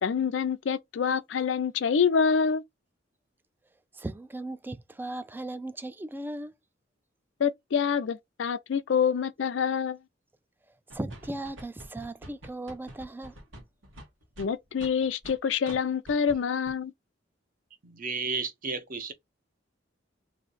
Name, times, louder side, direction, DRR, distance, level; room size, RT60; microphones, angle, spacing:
voice 1, 0.0-2.6 7.4-10.0 14.4-16.9, left 6 dB, 70° left, 0.4 m, -26 dB
voice 2, 3.9-6.5 10.9-13.4, right 1 dB, 10° right, 0.3 m, -37 dB
sound 1, 10.9-15.4 15.7-15.8 16.1-16.4 16.7-16.8, right 1 dB, 90° right, 1.4 m, -46 dB
voice 3, 17.8-19.1, right 4 dB, 45° right, 0.7 m, -33 dB
3.1 x 2.7 x 4.0 m
head